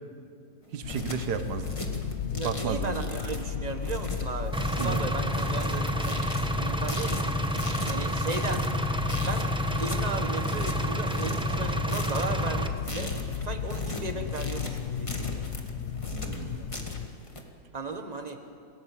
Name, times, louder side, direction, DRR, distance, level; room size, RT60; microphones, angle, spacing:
sound 1, 0.6-17.4, left 1 dB, 20° left, 1.9 m, -39 dB
voice 1, 0.7-1.7 2.4-3.0 4.8-5.1 16.1-16.6, right 7 dB, 85° right, 10 dB, 1.6 m, -33 dB
sound 2, 0.8-17.1, left 7 dB, 55° left, 0.9 m, -35 dB
voice 2, 2.3-7.3 7.9-8.7 9.2-9.5 9.8-13.1 13.4-15.5 17.7-18.4, right 3 dB, 25° right, 6 dB, 1.5 m, -36 dB
Engine, 4.5-12.7, equal, 5° right, 0.9 m, -29 dB
28.0 x 16.5 x 7.6 m, 2.4 s
omnidirectional pair, 1.7 m